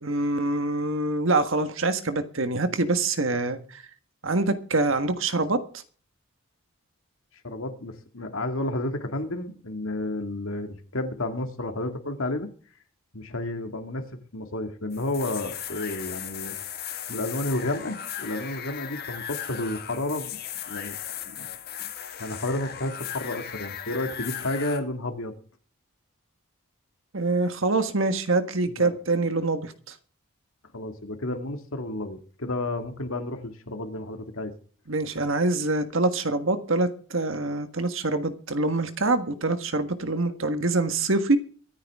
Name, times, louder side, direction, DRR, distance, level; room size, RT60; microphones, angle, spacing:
voice 1, 0.0-3.8 4.2-5.6 27.1-29.9 34.9-41.4, right 2 dB, 65° right, 9 dB, 1.5 m, -25 dB
voice 2, 7.4-12.5 13.1-14.0 14.3-16.6 17.1-20.4 20.7-21.0 21.2-21.5 21.8-21.9 22.2-25.4 28.7-28.9 30.7-34.5, left 2 dB, 75° left, 6 dB, 2.1 m, -31 dB
sound 1, 14.9-24.8, left 9 dB, 45° left, 1.7 m, -37 dB
23.5 x 9.7 x 3.6 m, 0.43 s
head